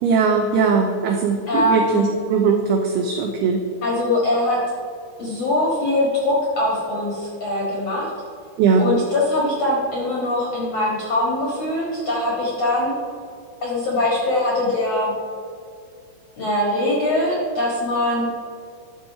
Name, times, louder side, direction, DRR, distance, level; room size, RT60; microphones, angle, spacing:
voice 1, 0.0-3.7 8.6-8.9, right 5 dB, 85° right, 4 dB, 2.2 m, -19 dB
voice 2, 1.5-2.1 3.8-4.6 5.2-8.1 8.8-12.9 13.6-15.1 16.4-18.3, left 1 dB, 55° left, -4 dB, 1.8 m, -22 dB
11.0 x 6.3 x 4.7 m, 2.4 s
omnidirectional pair, 5.2 m